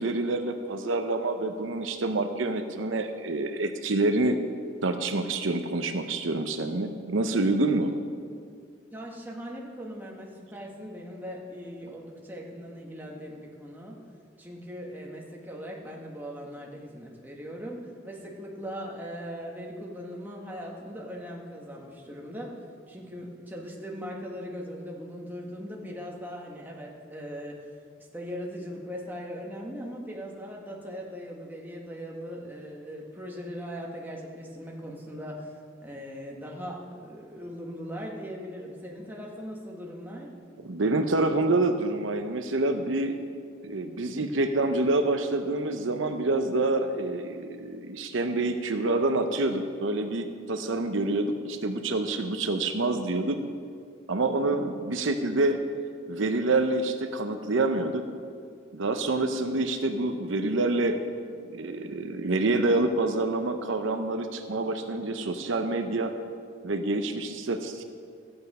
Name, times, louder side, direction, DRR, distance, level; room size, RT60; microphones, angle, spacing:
voice 1, 0.0-4.4 4.8-7.9 40.6-43.2 43.6-53.4 54.1-55.6 56.1-58.0 58.7-61.0 61.5-66.1 66.6-67.8, right 2 dB, 75° right, 7 dB, 0.7 m, -27 dB
voice 2, 8.9-14.0 14.4-22.6 22.9-27.6 28.0-35.5 35.8-40.3, equal, 10° right, -2 dB, 1.4 m, -39 dB
14.0 x 8.7 x 5.4 m, 2.2 s
head